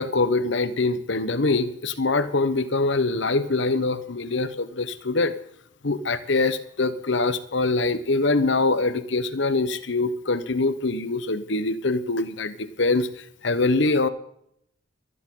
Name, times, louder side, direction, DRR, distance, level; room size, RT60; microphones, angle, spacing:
voice 1, 0.0-5.3 5.8-13.1 13.4-14.1, left 3 dB, 70° left, 12 dB, 1.0 m, -24 dB
24.0 x 11.0 x 3.9 m, 0.71 s
head